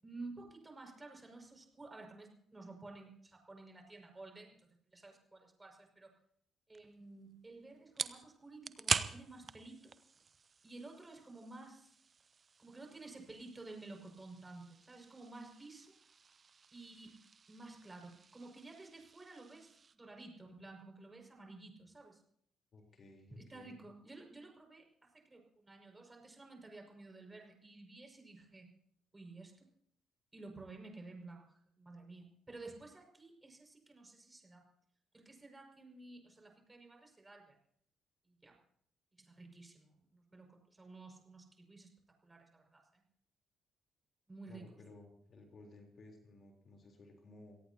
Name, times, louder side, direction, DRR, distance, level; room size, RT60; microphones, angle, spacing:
voice 1, 0.0-6.1 6.7-9.9 10.6-11.9 12.6-15.9 16.7-17.1 17.5-22.2 23.3-28.7 29.1-29.7 30.3-34.7 35.1-37.5 38.3-38.6 39.2-41.9 42.2-43.0 44.3-44.7, right 3 dB, 20° right, 2 dB, 5.9 m, -53 dB
sound 1, 6.7-20.0, right 5 dB, 35° right, 1.0 m, -45 dB
voice 2, 22.7-23.8 44.5-47.6, left 2 dB, 45° left, 2 dB, 3.8 m, -57 dB
26.5 x 18.5 x 2.9 m, 0.66 s
figure-of-eight pair, 45°, 0 cm